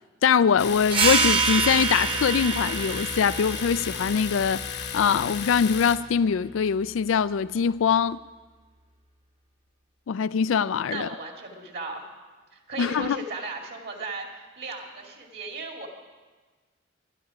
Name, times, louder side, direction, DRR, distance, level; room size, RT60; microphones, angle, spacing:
voice 1, 0.2-8.2 10.1-11.1 12.8-13.2, left 7 dB, 75° left, 0.4 m, -23 dB
Domestic sounds home sounds, 0.6-6.0, left 7 dB, 55° left, 1.0 m, -34 dB
sound 1, 0.9-6.1, right 4 dB, 25° right, 1.2 m, -27 dB
voice 2, 10.9-12.0 12.5-14.3 14.6-15.9, right 3 dB, 50° right, 2.4 m, -36 dB
25.0 x 11.0 x 4.9 m
head